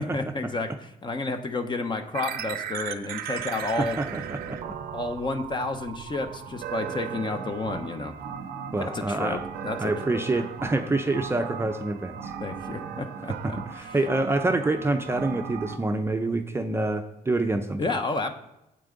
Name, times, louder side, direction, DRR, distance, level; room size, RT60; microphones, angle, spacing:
voice 1, 0.0-4.0 4.9-8.1 8.8-10.2 12.4-14.0 17.8-18.3, left 3 dB, 30° left, 7 dB, 0.9 m, -31 dB
sound 1, 2.1-15.8, right 8 dB, 85° right, 0.7 m, -37 dB
voice 2, 3.8-4.7 8.7-9.4 9.8-12.3 13.4-18.0, right 2 dB, 15° right, 6 dB, 0.6 m, -27 dB
8.9 x 8.2 x 3.9 m, 0.89 s
cardioid pair, 100°, 15 cm